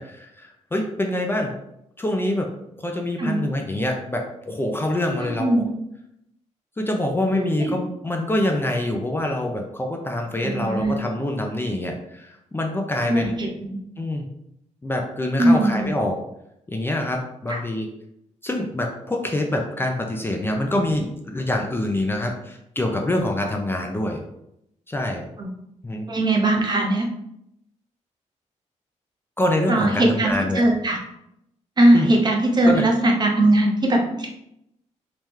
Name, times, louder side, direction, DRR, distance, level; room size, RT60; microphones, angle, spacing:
voice 1, 0.0-1.5 2.0-2.5 2.8-5.6 6.8-13.4 14.0-14.3 14.8-16.2 16.7-17.9 18.4-24.2 24.9-25.3 25.8-26.1 29.4-30.6 31.9-32.1 32.7-32.9, left 1 dB, 15° left, 2 dB, 0.5 m, -25 dB
voice 2, 5.2-5.6 7.3-7.7 10.4-10.9 13.1-13.8 15.4-15.9 17.5-17.6 25.4-25.5 26.1-27.1 29.7-31.0 31.8-34.3, right 1 dB, 35° right, 0 dB, 0.8 m, -20 dB
3.6 x 3.0 x 3.1 m, 0.80 s
cardioid pair, 100°, 13 cm